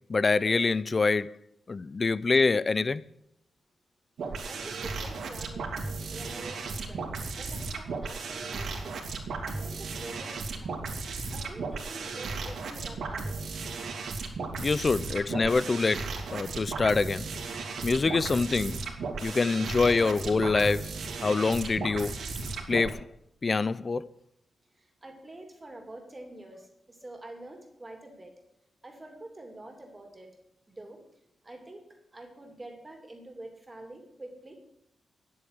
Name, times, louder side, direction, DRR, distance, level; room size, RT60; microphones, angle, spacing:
voice 1, 0.1-1.4 1.7-3.0 12.5-12.6 14.6-18.8 19.2-22.2 22.7-23.1 23.4-24.1, left 4 dB, 30° left, 0.5 m, -26 dB
sound 1, 4.2-22.9, right 4 dB, 75° right, 2.8 m, -35 dB
voice 2, 4.5-5.7 6.1-7.0 7.4-9.0 9.4-10.8 11.3-13.5 24.8-28.3 28.8-30.3 30.8-31.0 31.4-31.8 32.1-34.5, right 1 dB, 15° right, 2.7 m, -46 dB
10.0 x 8.8 x 9.7 m
wide cardioid pair, 150°, 0 cm